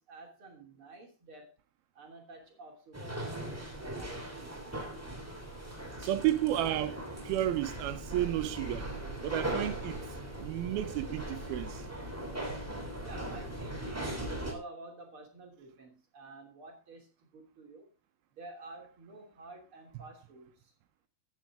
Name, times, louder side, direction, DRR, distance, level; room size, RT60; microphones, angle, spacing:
voice 1, 0.0-1.5 2.0-4.6 13.0-17.9 18.4-20.7, right 2 dB, 35° right, 3.5 m, -50 dB
sound 1, 2.9-14.5, right 1 dB, 5° right, 2.5 m, -39 dB
voice 2, 6.0-8.9 9.2-10.0 10.4-11.8, right 13 dB, 85° right, 2.8 m, -32 dB
13.5 x 9.6 x 3.7 m
omnidirectional pair, 4.2 m